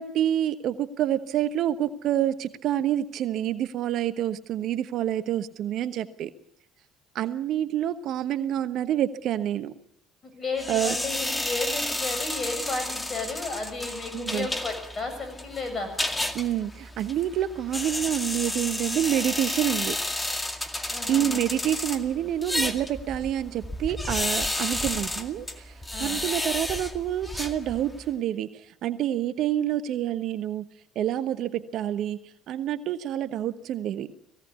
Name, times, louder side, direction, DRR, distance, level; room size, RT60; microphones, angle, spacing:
voice 1, 0.0-6.3 7.1-9.7 10.7-11.0 14.1-14.5 16.3-20.0 20.8-25.7 26.0-30.7 30.9-32.2 32.5-34.1, right 11 dB, 60° right, 13 dB, 1.1 m, -27 dB
voice 2, 10.4-15.9 20.9-21.4 25.9-26.2, left 3 dB, 35° left, 7 dB, 7.8 m, -33 dB
sound 1, 10.6-28.1, left 1 dB, 15° left, 2.1 m, -32 dB
20.0 x 16.5 x 8.2 m, 0.73 s
hypercardioid pair, 65°, 0 cm